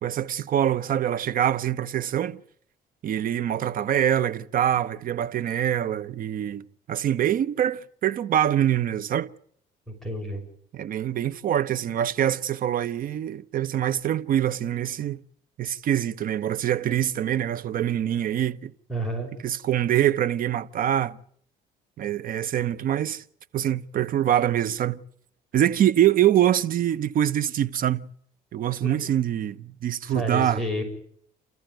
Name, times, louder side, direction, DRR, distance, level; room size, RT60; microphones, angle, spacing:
voice 1, 0.0-2.4 3.0-9.3 10.7-15.2 15.6-18.7 19.4-21.2 22.0-23.2 23.5-25.0 25.5-28.1 28.5-30.6, right 11 dB, 55° right, 1.0 m, -24 dB
voice 2, 10.0-10.4 18.9-19.3 28.8-28.9 30.1-30.8, equal, ahead, 6.3 m, -29 dB
29.5 x 14.0 x 9.1 m
cardioid pair, 110°, 17 cm